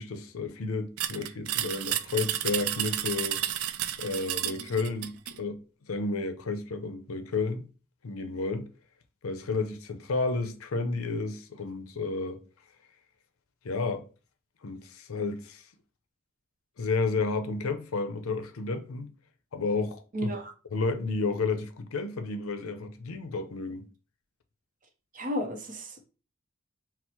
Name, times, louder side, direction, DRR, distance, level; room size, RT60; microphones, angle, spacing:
voice 1, 0.0-3.4 4.0-7.7 8.0-8.7 9.2-12.4 13.6-14.0 14.6-15.6 16.8-19.1 19.5-20.3 20.7-23.9, left 3 dB, 80° left, 0.6 m, -31 dB
sound 1, 1.0-5.4, right 12 dB, 90° right, 0.4 m, -31 dB
voice 2, 20.1-20.5 25.1-26.1, equal, 40° right, 0.7 m, -33 dB
4.4 x 2.0 x 4.3 m
head